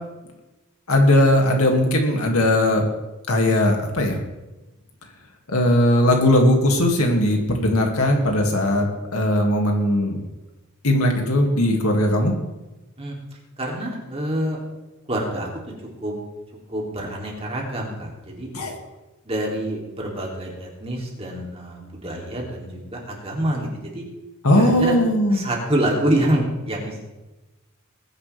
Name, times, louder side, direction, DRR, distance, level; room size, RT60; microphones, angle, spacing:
voice 1, 0.9-2.8 3.3-4.2 5.5-10.2 10.8-12.3 18.5-18.8 24.4-25.5, left 1 dB, 85° left, 2 dB, 2.4 m, -19 dB
voice 2, 13.6-14.6 15.1-15.5 16.0-16.1 16.7-18.5 19.3-24.0 24.4-25.0 25.3-27.0, right 1 dB, 25° right, -2 dB, 3.0 m, -26 dB
20.0 x 10.5 x 3.5 m, 1.0 s
head